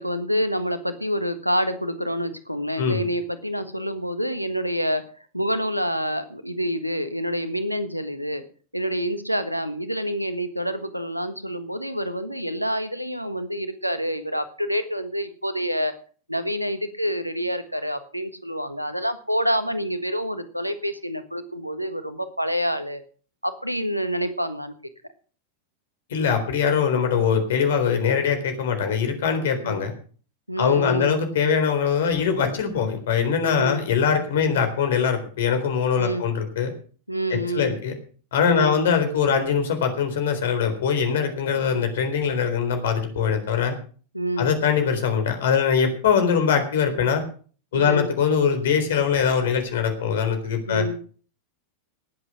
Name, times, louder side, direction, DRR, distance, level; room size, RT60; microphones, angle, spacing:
voice 1, 0.0-5.0 5.3-8.4 8.7-15.9 16.3-23.0 23.4-24.7 29.6-29.8 30.5-31.2 33.6-33.8 34.4-34.6 35.9-36.3 37.1-37.8 38.5-38.8 41.5-41.8 44.1-44.6 47.7-48.1 50.7-51.0, equal, 90° right, 11 dB, 1.5 m, -27 dB
voice 2, 26.1-29.9 30.6-36.7 37.5-37.9 38.3-43.8 44.4-47.2 47.7-50.8, left 7 dB, 60° left, 7 dB, 3.9 m, -22 dB
19.0 x 8.1 x 6.0 m, 0.42 s
figure-of-eight pair, 90°, 0 cm